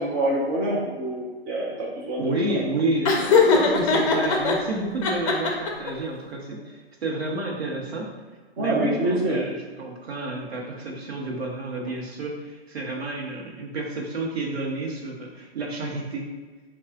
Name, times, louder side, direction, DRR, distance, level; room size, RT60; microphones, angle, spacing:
voice 1, 0.0-2.3 8.6-9.4, right 1 dB, 15° right, -4 dB, 0.4 m, -26 dB
voice 2, 2.2-8.1 8.6-16.3, right 2 dB, 65° right, 0 dB, 1.0 m, -30 dB
Laughter, 3.0-4.5 5.0-5.9, left 4 dB, 30° left, 0.6 m, -20 dB
5.4 x 2.4 x 2.5 m, 1.4 s
hypercardioid pair, 130°, 33 cm